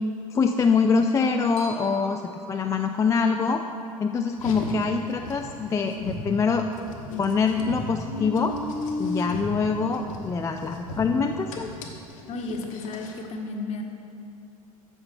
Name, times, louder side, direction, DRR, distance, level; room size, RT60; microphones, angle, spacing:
voice 1, 0.3-2.2 2.5-3.6 4.0-6.7 7.2-8.6 9.0-11.7, left 5 dB, 15° left, 4 dB, 0.3 m, -24 dB
sound 1, 1.6-3.3, right 2 dB, 80° right, 1.3 m, -47 dB
Car, 4.3-13.3, left 2 dB, 65° left, 1.1 m, -35 dB
voice 2, 12.3-13.8, left 3 dB, 35° left, 3 dB, 1.1 m, -33 dB
10.5 x 6.8 x 4.4 m, 2.7 s
figure-of-eight pair, 75°, 19 cm